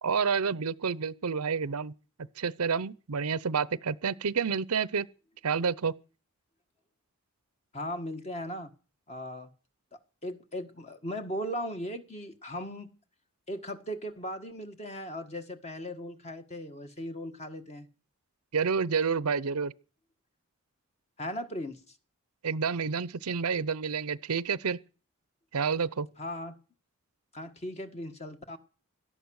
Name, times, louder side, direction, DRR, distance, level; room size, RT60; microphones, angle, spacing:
voice 1, 0.0-1.9 2.4-5.1 5.4-5.9 18.5-19.7 22.4-24.8 25.5-26.1, right 5 dB, 85° right, 0.7 m, -29 dB
voice 2, 7.7-8.7 9.1-9.5 10.2-12.9 13.5-17.9 21.2-21.8 26.2-26.6 27.3-28.6, equal, 30° left, 1.7 m, -38 dB
17.5 x 12.5 x 6.5 m
head